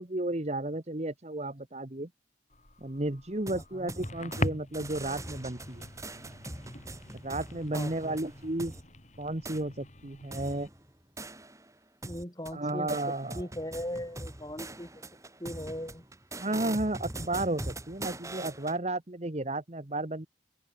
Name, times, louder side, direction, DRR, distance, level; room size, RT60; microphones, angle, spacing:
voice 1, 0.0-2.1 2.8-5.8 7.2-8.7 9.2-10.7 12.5-13.5 16.4-20.3, right 2 dB, 35° right, 1.4 m, -33 dB
sound 1, 2.5-10.7, left 1 dB, 40° left, 4.6 m, -41 dB
voice 2, 3.5-3.9 7.7-8.2 12.0-13.0 13.3-15.0 15.4-16.0, equal, 20° left, 6.4 m, -39 dB
sound 2, 3.5-4.5 4.7-8.8 9.4-9.6 10.3-11.7 12.0-18.8, right 2 dB, 15° right, 6.6 m, -42 dB
open air
head